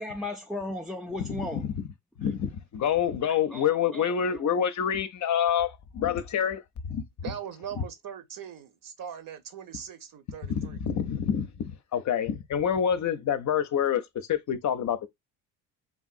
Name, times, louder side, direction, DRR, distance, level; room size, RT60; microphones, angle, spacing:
voice 1, 0.0-1.7 3.2-4.5, left 2 dB, ahead, 0.3 m, -36 dB
voice 2, 1.5-1.8 2.2-7.0 10.5-15.1, left 8 dB, 40° left, 0.7 m, -27 dB
voice 3, 7.2-10.8, right 8 dB, 45° right, 0.9 m, -40 dB
3.5 x 2.5 x 2.4 m
hypercardioid pair, 55°, 45 cm